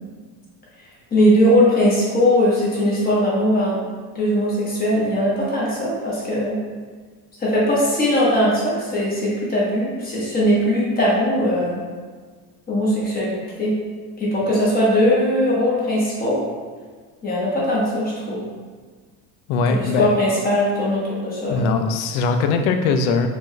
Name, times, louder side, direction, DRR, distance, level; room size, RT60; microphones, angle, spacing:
voice 1, 1.1-3.8 4.1-6.6 7.4-11.8 12.7-13.7 14.2-16.4 17.2-18.4 19.7-21.7, equal, 20° left, -6 dB, 1.1 m, -20 dB
voice 2, 19.5-20.2 21.5-23.3, left 4 dB, 75° left, 6 dB, 0.6 m, -20 dB
4.6 x 2.5 x 3.1 m, 1.5 s
cardioid pair, 140°, 43 cm